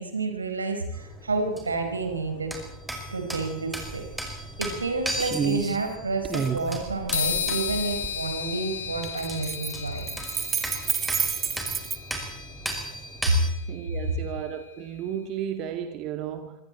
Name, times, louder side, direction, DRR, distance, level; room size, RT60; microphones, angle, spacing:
voice 1, 0.0-2.5 3.1-10.0 13.3-13.4, right 3 dB, 75° right, 5 dB, 4.9 m, -29 dB
sound 1, 0.9-13.5, right 1 dB, 5° right, 5.8 m, -37 dB
sound 2, 3.8-4.0 4.4-4.9 5.2-5.8 6.2-8.2 9.0-12.0, right 6 dB, 20° right, 2.0 m, -29 dB
sound 3, 7.1-14.8, left 9 dB, 60° left, 2.7 m, -35 dB
voice 2, 13.7-16.6, right 9 dB, 40° right, 6 dB, 2.0 m, -33 dB
25.5 x 24.5 x 4.4 m, 0.78 s
figure-of-eight pair, 90°, 0 cm